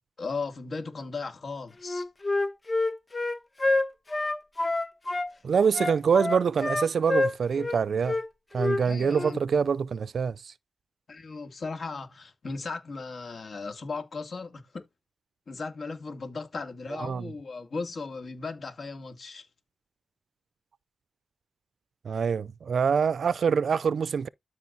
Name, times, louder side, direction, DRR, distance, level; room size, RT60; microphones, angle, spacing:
voice 1, 0.2-2.0 8.8-9.4 11.1-14.9 15.5-19.5, left 4 dB, 60° left, 2.5 m, -36 dB
Wind instrument woodwind instrument, 1.8-5.3 5.7-7.8 8.0-8.2 8.6-8.8 9.1-9.3, left 2 dB, 35° left, 1.3 m, -27 dB
voice 2, 5.4-8.2 8.5-10.5 17.0-17.3 22.0-24.3, right 6 dB, 70° right, 0.4 m, -25 dB
13.0 x 4.9 x 2.7 m
cardioid pair, 55°, 0 cm